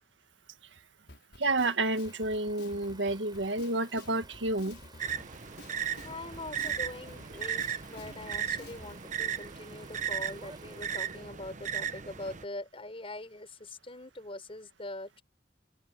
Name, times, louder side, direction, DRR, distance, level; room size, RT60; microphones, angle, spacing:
Drum kit, 1.1-9.0, left 2 dB, 65° left, 5.5 m, -51 dB
voice 1, 1.4-4.8, right 2 dB, 90° right, 1.8 m, -30 dB
sound 1, 1.9-12.4, right 3 dB, 25° right, 5.2 m, -55 dB
sound 2, 5.0-12.4, right 8 dB, 45° right, 1.0 m, -36 dB
voice 2, 6.0-15.2, left 2 dB, 30° left, 5.5 m, -43 dB
head